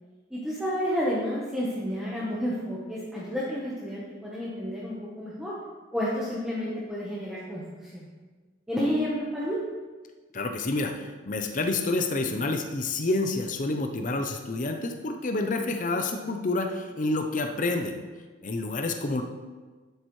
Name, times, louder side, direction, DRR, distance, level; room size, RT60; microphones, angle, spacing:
voice 1, 0.3-5.6 5.9-8.1 8.7-9.6, equal, 5° right, -7 dB, 1.1 m, -30 dB
voice 2, 10.3-18.0 18.4-19.2, left 2 dB, 40° left, 5 dB, 0.6 m, -28 dB
11.0 x 7.9 x 3.2 m, 1.4 s
head